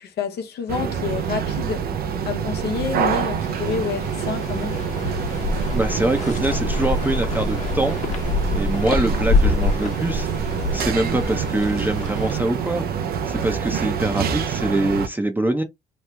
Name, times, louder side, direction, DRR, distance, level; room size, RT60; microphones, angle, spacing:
voice 1, 0.0-1.9 2.3-4.8, left 6 dB, 65° left, 0.9 m, -28 dB
sound 1, 0.7-15.1, right 7 dB, 60° right, 0.6 m, -26 dB
sound 2, 2.6-12.9, left 3 dB, 25° left, 1.1 m, -44 dB
sound 3, 3.4-12.4, left 3 dB, 45° left, 1.2 m, -26 dB
voice 2, 5.7-8.0 8.5-10.3 10.7-15.6, right 2 dB, 10° right, 0.7 m, -24 dB
3.1 x 2.3 x 3.3 m
hypercardioid pair, 60°, 18 cm